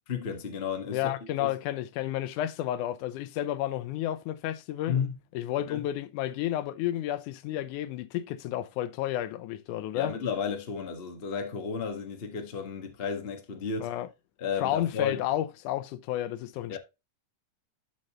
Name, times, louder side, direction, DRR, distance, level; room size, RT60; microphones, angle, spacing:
voice 1, 0.1-1.1 1.4-1.5 4.9-5.1 5.7-5.8 9.9-13.9 14.4-15.2 16.7-16.8, left 6 dB, 45° left, 0.7 m, -33 dB
voice 2, 0.9-5.0 5.3-10.1 13.8-14.1 14.6-16.8, left 13 dB, 85° left, 2.2 m, -31 dB
12.0 x 5.2 x 3.0 m
omnidirectional pair, 3.5 m